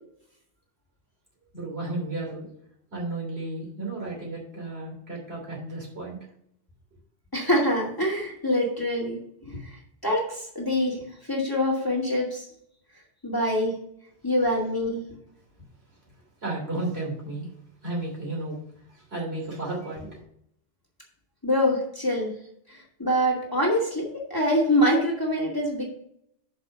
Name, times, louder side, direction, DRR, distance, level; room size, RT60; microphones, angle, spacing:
voice 1, 1.5-2.5 2.9-6.2 16.4-17.5 17.8-18.6 18.9-20.2, right 2 dB, 60° right, -3 dB, 3.4 m, -33 dB
voice 2, 7.3-9.2 9.6-11.0 11.3-12.5 13.2-13.7 14.2-15.0 21.4-22.3 22.7-25.9, equal, 20° left, -3 dB, 2.1 m, -25 dB
6.6 x 5.4 x 6.5 m, 0.70 s
omnidirectional pair, 1.2 m